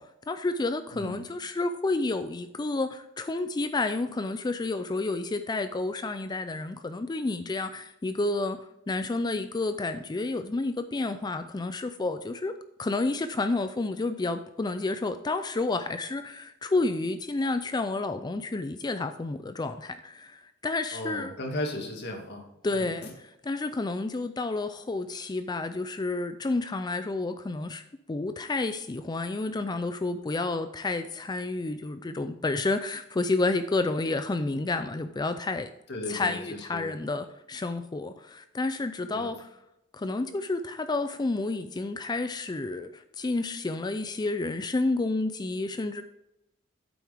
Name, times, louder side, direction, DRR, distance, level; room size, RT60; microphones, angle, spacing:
voice 1, 0.0-21.3 22.6-35.7 36.1-39.4 39.9-46.0, left 2 dB, 20° left, 9 dB, 0.4 m, -30 dB
voice 2, 0.9-1.2 20.9-23.1 35.9-37.0 39.1-39.3, left 1 dB, 55° left, 2 dB, 2.1 m, -36 dB
9.2 x 7.7 x 3.4 m, 0.88 s
head